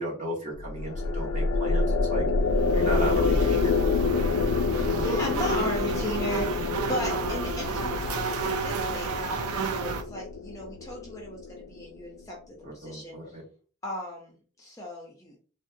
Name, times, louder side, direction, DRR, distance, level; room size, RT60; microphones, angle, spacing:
voice 1, 0.0-2.2 2.7-3.8 12.6-13.4, right 1 dB, 35° right, -4 dB, 1.3 m, -34 dB
sound 1, 0.6-12.0, left 4 dB, 80° left, 0.4 m, -28 dB
sound 2, 2.5-10.0, right 3 dB, 80° right, 0.4 m, -31 dB
voice 2, 4.7-13.2 13.8-15.4, equal, 15° left, -2 dB, 0.5 m, -36 dB
3.6 x 2.1 x 2.6 m, 0.39 s
head